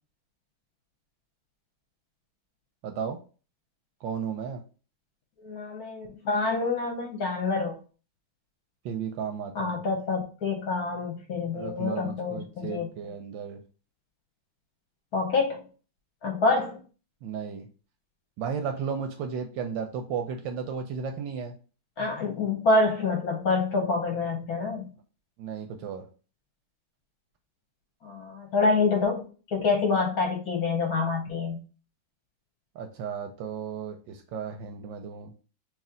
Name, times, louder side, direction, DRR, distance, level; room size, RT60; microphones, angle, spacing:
voice 1, 2.8-3.2 4.0-4.6 8.8-9.8 11.5-13.6 17.2-17.7 18.4-21.5 25.4-26.1 32.7-35.3, right 6 dB, 75° right, 5 dB, 1.1 m, -34 dB
voice 2, 5.4-7.8 9.5-12.9 15.1-15.6 16.2-16.8 22.0-24.9 28.0-29.3 29.5-31.6, left 3 dB, 60° left, 1 dB, 1.1 m, -27 dB
3.2 x 3.1 x 3.7 m, 0.36 s
omnidirectional pair, 2.3 m